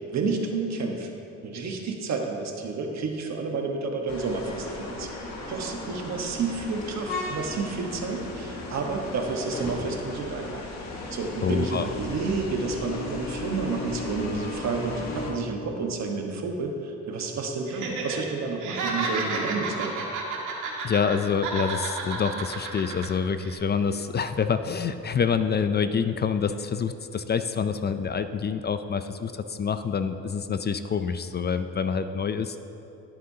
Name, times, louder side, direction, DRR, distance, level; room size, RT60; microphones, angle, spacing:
voice 1, 0.1-1.1 1.4-5.1 5.5-10.6 11.1-20.1, right 4 dB, 60° right, 2 dB, 1.4 m, -30 dB
sound 1, 4.1-15.3, left 2 dB, 65° left, 1.9 m, -36 dB
voice 2, 11.4-11.9 20.8-32.6, left 6 dB, 35° left, 10 dB, 0.5 m, -27 dB
Laughter, 17.7-18.2 18.5-21.2 21.4-23.1 23.4-23.6, right 4 dB, 90° right, 1.8 m, -31 dB
17.5 x 7.8 x 2.8 m, 2.9 s
cardioid pair, 90°, 30 cm